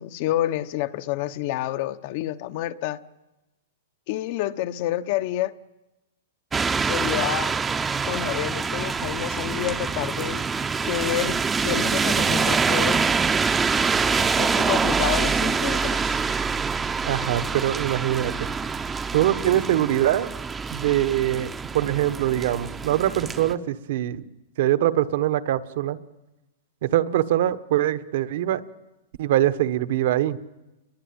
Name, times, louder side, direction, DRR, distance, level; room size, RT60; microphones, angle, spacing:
voice 1, 0.0-3.0 4.1-5.5 6.9-7.5 8.1-10.4 10.8-13.0 13.9-16.2, left 13 dB, 40° left, 1.0 m, -29 dB
sound 1, 6.5-23.5, right 5 dB, 10° right, 0.9 m, -25 dB
voice 2, 17.0-18.5 19.1-20.3 20.7-24.2 24.6-26.0 26.8-28.6 29.2-30.4, right 13 dB, 55° right, 1.4 m, -23 dB
29.5 x 22.5 x 8.8 m
supercardioid pair, 165°, 0 cm